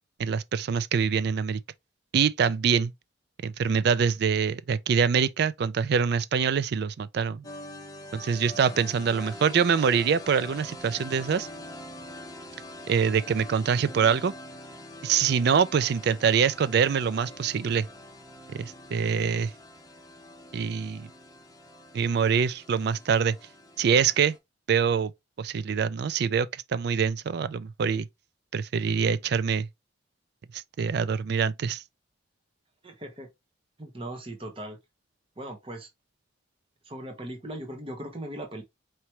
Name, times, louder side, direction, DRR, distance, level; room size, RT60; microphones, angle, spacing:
voice 1, 0.2-1.6 2.1-2.9 3.4-7.4 8.1-11.5 12.9-14.3 15.0-17.9 18.5-19.5 20.5-21.1 21.9-23.4 23.8-24.3 24.7-25.1 25.4-28.1 28.5-29.7 30.5-31.8, right 6 dB, 55° right, 0.3 m, -25 dB
sound 1, 7.4-24.4, left 1 dB, 20° left, 0.7 m, -44 dB
voice 2, 32.8-33.3 33.8-34.8 35.4-35.9 36.8-38.6, right 1 dB, 30° right, 1.0 m, -38 dB
4.5 x 3.0 x 2.9 m
head